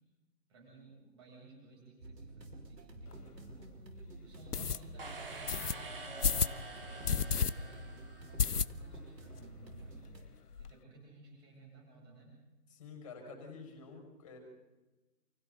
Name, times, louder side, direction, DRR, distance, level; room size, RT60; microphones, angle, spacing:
voice 1, 0.5-10.2 10.5-12.3, right 3 dB, 15° right, -2 dB, 7.8 m, -57 dB
sound 1, 2.0-10.2, right 2 dB, 80° right, 5.6 m, -50 dB
sound 2, 3.1-3.2 3.7-3.8 4.5-4.8 5.5-5.7 6.2-6.6 7.0-7.5 7.8-7.9 8.4-9.0 9.4-9.5 9.7-9.8 10.1-10.7, left 6 dB, 65° left, 1.0 m, -31 dB
sound 3, 5.0-8.8, right 3 dB, 35° right, 3.7 m, -47 dB
voice 2, 12.7-14.4, left 4 dB, 20° left, 2 dB, 5.7 m, -49 dB
29.5 x 29.0 x 4.0 m, 1.1 s
hypercardioid pair, 175°, 50 cm